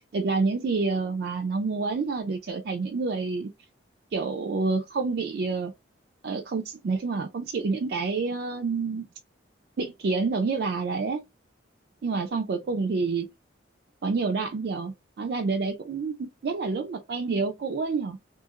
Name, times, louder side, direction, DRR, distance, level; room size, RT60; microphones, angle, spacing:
voice 1, 0.0-3.5 4.1-5.7 6.2-9.0 9.8-11.2 12.0-13.3 14.0-18.2, right 4 dB, 55° right, 0.3 m, -28 dB
2.7 x 2.4 x 2.8 m
head